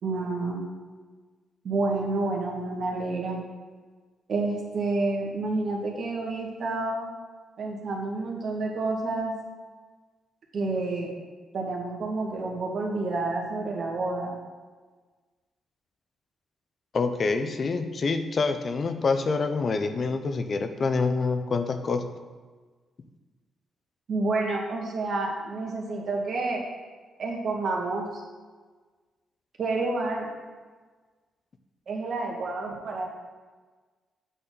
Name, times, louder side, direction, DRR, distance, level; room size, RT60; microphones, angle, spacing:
voice 1, 0.0-0.6 1.6-3.4 4.3-7.1 7.6-9.3 10.5-11.1 11.5-14.4 24.1-26.6 27.2-28.2 29.6-30.3 31.9-33.1, right 3 dB, 65° right, -1 dB, 2.0 m, -29 dB
voice 2, 16.9-22.0, left 4 dB, 50° left, 8 dB, 0.7 m, -26 dB
8.7 x 4.3 x 6.8 m, 1.4 s
cardioid pair, 70°, 0 cm